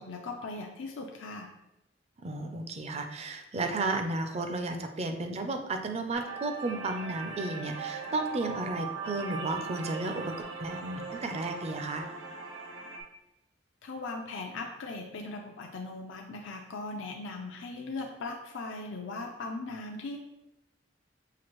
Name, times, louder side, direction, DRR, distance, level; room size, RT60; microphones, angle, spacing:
voice 1, 0.0-1.5 13.8-20.2, left 3 dB, 90° left, 2 dB, 0.4 m, -39 dB
voice 2, 2.2-12.1, right 2 dB, 35° right, 6 dB, 0.4 m, -33 dB
sound 1, 6.1-13.0, right 5 dB, 85° right, 0.8 m, -39 dB
5.9 x 2.5 x 3.0 m, 0.89 s
head